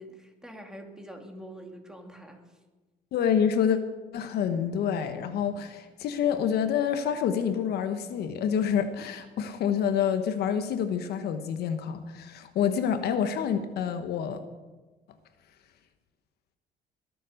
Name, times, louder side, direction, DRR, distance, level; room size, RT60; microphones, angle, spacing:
voice 1, 0.0-2.5, equal, 5° right, 3 dB, 2.4 m, -45 dB
voice 2, 3.1-3.8 4.1-14.4, left 8 dB, 70° left, 9 dB, 1.2 m, -27 dB
21.5 x 7.7 x 6.5 m, 1.2 s
cardioid pair, 110°, 17 cm